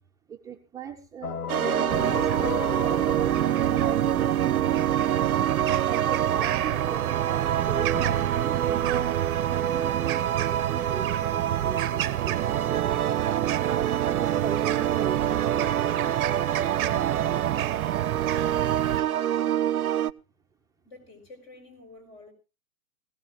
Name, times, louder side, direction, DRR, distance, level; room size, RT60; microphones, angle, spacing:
voice 1, 0.3-4.9 5.7-9.2 9.5-11.1 11.3-12.4 14.1-16.1, right 7 dB, 10° right, 0.8 m, -39 dB
sound 1, 1.2-4.1, left 7 dB, 90° left, 0.7 m, -35 dB
sound 2, 1.5-20.1, right 10 dB, 80° right, 0.6 m, -26 dB
sound 3, 1.9-19.0, right 13 dB, 35° right, 0.9 m, -30 dB
voice 2, 19.3-19.7 20.8-22.3, left 2 dB, 30° left, 5.1 m, -49 dB
21.0 x 17.0 x 2.4 m
figure-of-eight pair, 120°, 43 cm